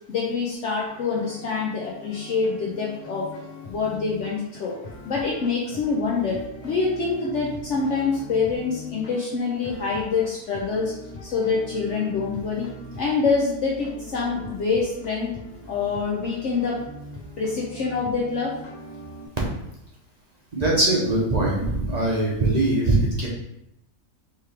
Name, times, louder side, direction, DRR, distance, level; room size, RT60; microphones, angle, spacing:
voice 1, 0.1-3.3 3.7-4.8 5.1-10.9 11.2-12.7 12.9-15.4 15.7-16.8 17.4-18.6, left 4 dB, 60° left, -3 dB, 0.9 m, -25 dB
sound 1, 0.9-19.3, left 1 dB, 80° left, 1.6 m, -41 dB
voice 2, 20.5-23.3, right 2 dB, 35° right, -4 dB, 0.8 m, -21 dB
4.6 x 3.2 x 3.4 m, 0.81 s
omnidirectional pair, 1.6 m